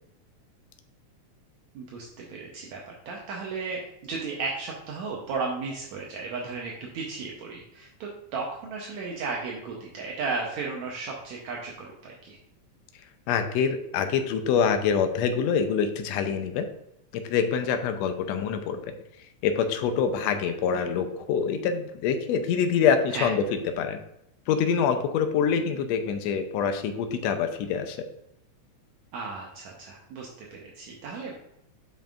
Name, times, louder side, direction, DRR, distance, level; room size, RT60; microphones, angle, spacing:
voice 1, 1.8-12.4 23.1-23.3 29.1-31.3, right 4 dB, 70° right, -2 dB, 2.1 m, -35 dB
voice 2, 13.3-16.7 17.1-18.9 19.4-23.4 23.8-24.0 24.5-28.0, left 7 dB, 75° left, 7 dB, 1.6 m, -25 dB
9.0 x 5.5 x 2.5 m, 0.83 s
omnidirectional pair, 3.5 m